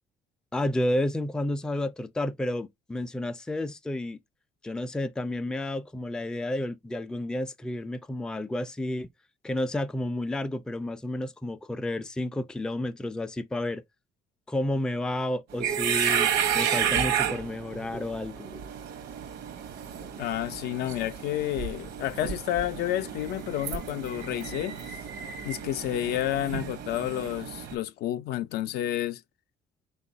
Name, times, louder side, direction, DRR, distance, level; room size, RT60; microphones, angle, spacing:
voice 1, 0.5-4.2 4.6-9.1 9.4-13.8 14.5-18.5, left 1 dB, 5° left, 0.3 m, -31 dB
sound 1, 15.5-27.8, right 8 dB, 80° right, 0.8 m, -32 dB
voice 2, 20.2-25.0 25.4-29.2, left 13 dB, 70° left, 0.4 m, -30 dB
3.8 x 2.3 x 3.8 m
cardioid pair, 110°, 17 cm